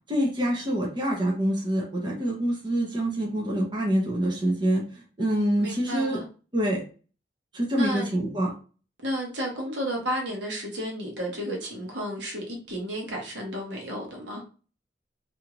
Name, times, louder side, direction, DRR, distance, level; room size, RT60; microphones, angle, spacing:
voice 1, 0.1-6.2 6.5-6.8 7.5-8.5, right 1 dB, 25° right, 0.7 m, -26 dB
voice 2, 5.6-6.3 7.7-8.1 9.0-14.4, equal, 70° right, 1.0 m, -32 dB
2.7 x 2.3 x 2.9 m
head